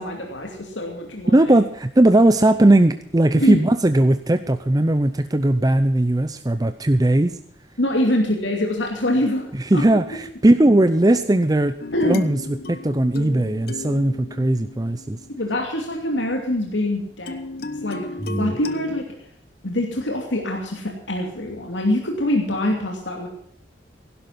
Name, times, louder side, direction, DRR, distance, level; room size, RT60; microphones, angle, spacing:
voice 1, 0.0-1.5 3.4-3.6 7.8-9.8 11.9-12.2 15.4-18.0 18.4-19.0 19.6-23.3, left 1 dB, 85° left, 1 dB, 2.7 m, -24 dB
voice 2, 1.3-7.3 9.5-11.8 12.0-15.2 18.2-18.6, right 1 dB, 20° right, 10 dB, 0.6 m, -18 dB
sound 1, 11.8-16.1 17.3-19.0, left 2 dB, 55° left, 1.0 m, -35 dB
17.0 x 11.5 x 5.9 m, 0.66 s
head